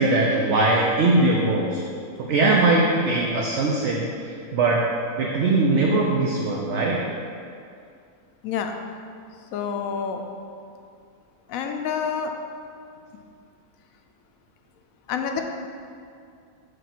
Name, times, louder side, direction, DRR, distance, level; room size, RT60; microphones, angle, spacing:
voice 1, 0.0-1.8 2.2-4.8 5.2-7.0, right 2 dB, 60° right, -1 dB, 0.8 m, -21 dB
voice 2, 8.4-8.8 9.5-10.2 11.5-12.3 15.1-15.4, left 7 dB, 75° left, 5 dB, 1.0 m, -27 dB
4.9 x 4.6 x 5.9 m, 2.4 s
omnidirectional pair, 1.5 m